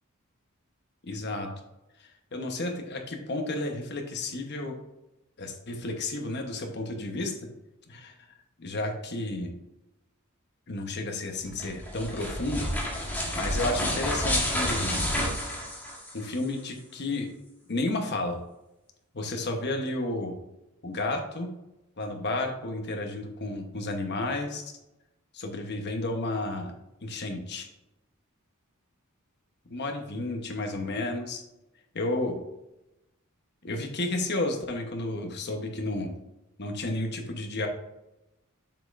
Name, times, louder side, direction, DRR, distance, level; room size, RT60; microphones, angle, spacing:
voice 1, 1.0-1.5 2.3-4.7 5.4-7.3 7.9-8.1 8.6-9.5 10.7-12.7 13.4-15.0 16.1-17.3 17.7-18.4 19.1-20.3 20.8-21.5 22.0-24.6 25.3-26.7 27.0-27.7 29.7-31.4 31.9-32.4 33.6-36.1 36.6-37.7, left 2 dB, 55° left, 4 dB, 1.0 m, -32 dB
sound 1, 11.5-16.4, equal, 10° left, 1.5 m, -30 dB
7.3 x 5.3 x 2.5 m, 0.94 s
head